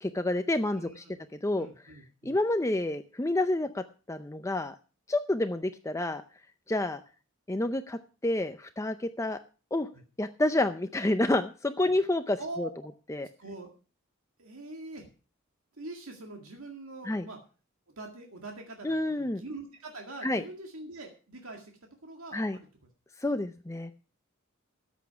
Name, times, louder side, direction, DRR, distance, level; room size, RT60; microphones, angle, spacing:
voice 1, 0.0-1.0 1.4-1.7 2.2-4.8 5.1-6.2 6.7-7.0 7.5-9.4 9.7-9.9 10.2-12.7 13.1-13.3 17.1-17.2 18.8-19.4 20.2-20.4 22.3-22.6 23.2-23.9, left 1 dB, 15° left, 9 dB, 0.5 m, -29 dB
voice 2, 0.7-2.3 9.9-10.0 11.8-11.9 12.4-12.7 13.4-13.7 14.4-15.1 15.7-17.4 18.0-21.7 22.0-22.7, right 2 dB, 80° right, 3 dB, 2.0 m, -43 dB
13.5 x 8.3 x 5.8 m, 0.36 s
head